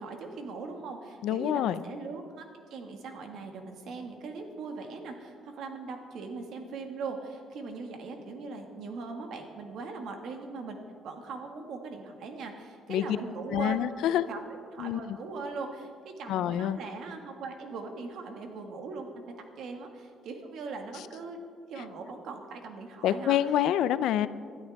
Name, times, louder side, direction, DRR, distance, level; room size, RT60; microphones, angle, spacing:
voice 1, 0.0-2.4 2.7-10.8 11.0-13.8 14.3-14.4 14.7-21.4 21.7-23.4, right 4 dB, 65° right, 4 dB, 1.8 m, -40 dB
voice 2, 1.2-1.8 12.9-13.2 13.5-14.3 14.8-15.0 16.3-16.8 23.0-24.3, left 11 dB, 80° left, 14 dB, 0.5 m, -27 dB
20.5 x 12.5 x 3.5 m, 2.1 s
cardioid pair, 155°, 0 cm